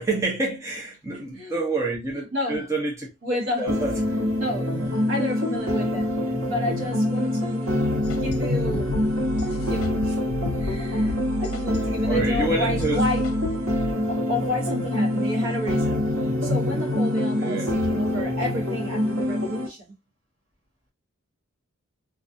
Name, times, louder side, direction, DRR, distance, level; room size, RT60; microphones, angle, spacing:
voice 1, 0.0-3.1 3.6-3.9 12.1-13.0 17.4-17.7, right 2 dB, 15° right, 0.5 m, -27 dB
voice 2, 1.1-1.6 2.1-2.6 3.2-3.7 4.4-7.9 8.2-9.0 9.4-10.2 10.6-13.3 14.1-16.0 16.4-19.9, left 1 dB, 60° right, 1.0 m, -31 dB
sound 1, 3.7-19.7, left 1 dB, 90° right, 1.0 m, -25 dB
sound 2, 8.0-13.9, equal, 70° left, 0.4 m, -33 dB
2.3 x 2.3 x 2.5 m
head